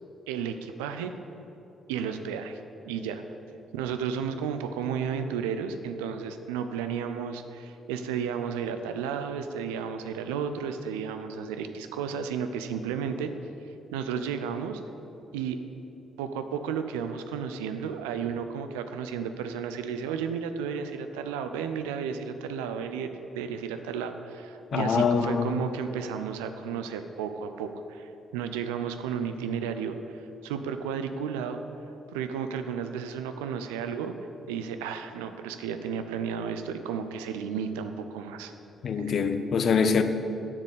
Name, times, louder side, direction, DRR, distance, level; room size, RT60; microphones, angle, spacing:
voice 1, 0.3-1.1 1.9-3.2 3.7-13.3 13.9-14.8 15.3-15.6 16.2-23.1 23.3-30.0 30.4-31.6 32.1-34.1 34.5-38.5 38.9-39.2, right 7 dB, 75° right, 0.5 m, -33 dB
voice 2, 24.7-25.6 38.8-40.0, left 6 dB, 55° left, 0.7 m, -24 dB
7.4 x 7.3 x 8.1 m
figure-of-eight pair, 40°, 0 cm